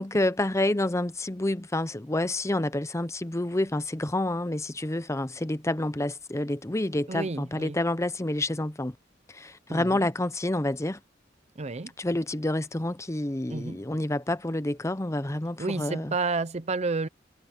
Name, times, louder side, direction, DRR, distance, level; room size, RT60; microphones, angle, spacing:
voice 1, 0.0-8.9 9.3-11.0 12.0-16.1, left 1 dB, 15° left, 0.7 m, -28 dB
voice 2, 7.1-7.8 9.7-10.1 11.6-11.9 13.5-13.8 15.6-17.1, right 3 dB, 35° right, 0.7 m, -30 dB
head